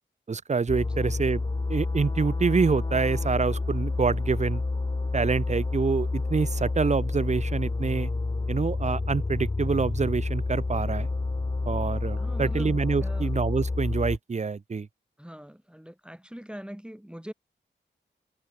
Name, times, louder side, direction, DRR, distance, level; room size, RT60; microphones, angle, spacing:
voice 1, 0.3-1.4 1.7-4.6 5.1-8.1 8.5-11.1 11.7-14.9, right 4 dB, 35° right, 0.7 m, -26 dB
sound 1, 0.7-14.2, left 3 dB, 25° left, 0.7 m, -29 dB
voice 2, 12.2-13.3 15.2-17.3, equal, 5° right, 1.8 m, -42 dB
cardioid pair, 55°, 19 cm